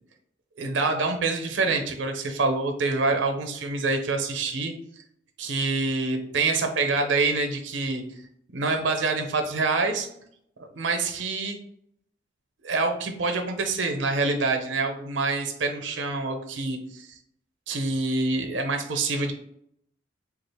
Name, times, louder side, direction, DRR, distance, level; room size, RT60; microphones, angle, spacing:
voice 1, 0.6-4.7 5.4-8.0 8.5-10.1 10.7-11.6 12.6-17.2 17.7-19.3, right 3 dB, 75° right, 5 dB, 0.6 m, -26 dB
3.6 x 2.4 x 3.4 m, 0.72 s
head